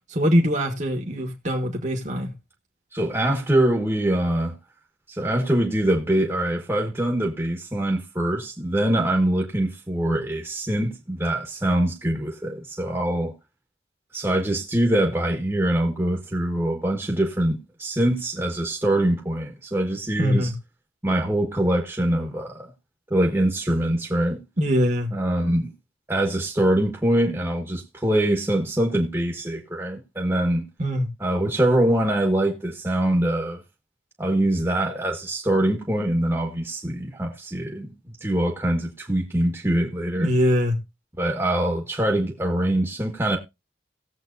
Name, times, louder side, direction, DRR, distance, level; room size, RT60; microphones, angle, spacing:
voice 1, 0.1-2.3 20.2-20.5 24.6-25.1 30.8-31.1 40.2-40.8, equal, 40° right, 1.5 m, -22 dB
voice 2, 2.9-4.6 5.1-13.3 14.1-20.5 21.0-22.7 23.1-24.4 25.1-25.7 26.1-30.7 31.2-33.6 34.2-37.9 38.2-40.3 41.2-43.4, right 1 dB, 15° right, 1.3 m, -23 dB
18.0 x 7.7 x 2.6 m
head